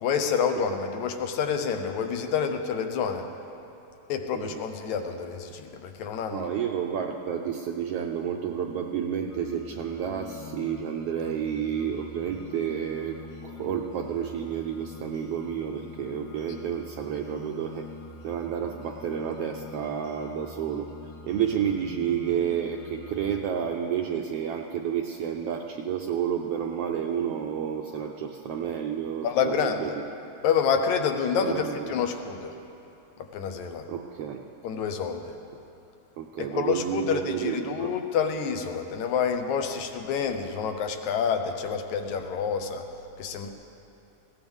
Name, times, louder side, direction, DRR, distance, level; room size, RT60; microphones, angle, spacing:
voice 1, 0.0-3.3 4.1-6.5 29.2-29.9 30.4-32.5 33.3-33.9 34.6-35.3 36.5-42.9 43.2-43.5, left 6 dB, 80° left, 6 dB, 2.2 m, -28 dB
voice 2, 6.3-17.9 18.2-20.9 21.3-29.9 31.4-31.9 33.9-34.4 36.2-38.0, right 8 dB, 80° right, 2 dB, 1.4 m, -30 dB
sound 1, 9.3-23.4, left 3 dB, 65° left, 2.0 m, -44 dB
19.5 x 16.5 x 3.5 m, 2.8 s
omnidirectional pair, 3.3 m